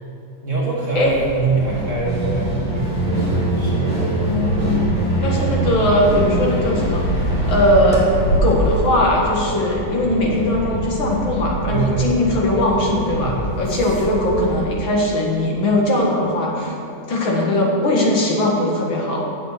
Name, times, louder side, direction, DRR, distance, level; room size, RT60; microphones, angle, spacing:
voice 1, 0.4-3.3 3.6-4.0 4.3-4.5 11.7-12.1 13.2-13.4, right 4 dB, 40° right, -5 dB, 1.8 m, -24 dB
sound 1, 0.9-14.7, right 1 dB, 20° left, 2.6 m, -23 dB
voice 2, 5.2-7.0 7.5-8.0 8.4-16.8 17.1-19.2, left 1 dB, 75° left, -2 dB, 2.4 m, -19 dB
7.8 x 7.1 x 8.2 m, 2.6 s
omnidirectional pair, 2.2 m